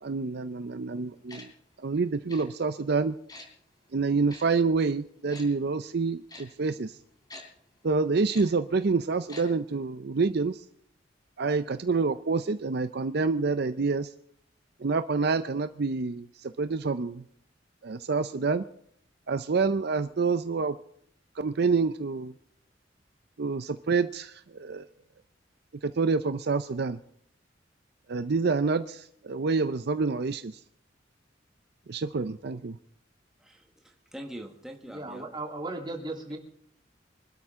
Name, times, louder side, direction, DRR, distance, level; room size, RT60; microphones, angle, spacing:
voice 1, 0.0-1.5 1.8-3.2 3.9-7.0 7.8-10.6 11.4-14.1 14.8-17.2 17.8-18.7 19.3-20.8 21.4-22.3 23.4-24.9 25.8-27.0 28.1-30.6 31.9-32.8, right 4 dB, 60° right, 11 dB, 0.6 m, -27 dB
Tick-tock, 1.3-1.4 2.3-2.4 3.3-3.5 4.3-4.4 5.3-5.4 6.3-6.4 7.3-7.4 8.3-8.4 9.3-9.4 9.7-9.8, left 2 dB, 20° left, 3.6 m, -44 dB
voice 2, 33.4-35.3, equal, 5° right, 2 dB, 1.4 m, -44 dB
voice 3, 34.9-36.4, right 2 dB, 25° right, 1 dB, 3.0 m, -36 dB
25.5 x 12.5 x 3.7 m, 0.66 s
head